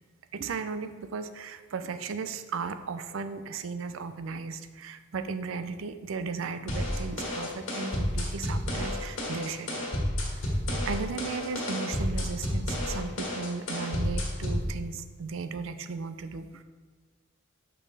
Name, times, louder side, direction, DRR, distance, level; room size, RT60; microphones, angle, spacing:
voice 1, 0.3-9.9 10.4-10.6 10.9-16.6, right 5 dB, 75° right, 10 dB, 0.4 m, -36 dB
sound 1, 6.7-14.7, left 1 dB, 70° left, 1.5 m, -30 dB
5.4 x 5.2 x 4.0 m, 1.4 s
head